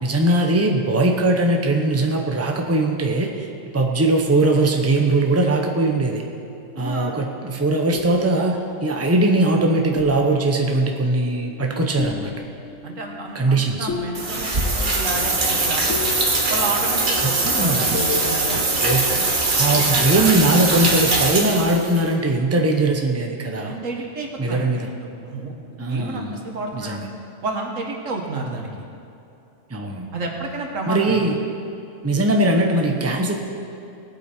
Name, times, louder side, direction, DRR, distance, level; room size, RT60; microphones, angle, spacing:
voice 1, 0.0-6.2 6.8-12.3 13.3-13.9 17.2-18.0 18.5-19.1 19.5-23.7 24.4-24.9 25.8-26.4 26.7-27.1 29.7-30.1 30.9-31.3 32.0-33.3, right 2 dB, 15° right, 2 dB, 0.9 m, -20 dB
sound 1, 6.3-7.3 7.9-9.6 9.9-19.5, left 5 dB, 75° left, 1.2 m, -35 dB
voice 2, 6.8-7.1 12.8-16.0 16.5-18.7 19.1-19.3 19.7-20.6 23.6-27.1 27.4-28.7 30.1-31.2, right 3 dB, 85° right, 1 dB, 1.8 m, -30 dB
sound 2, 14.1-22.0, right 3 dB, 40° right, 1.5 m, -21 dB
18.5 x 8.2 x 4.5 m, 2.8 s
omnidirectional pair, 1.3 m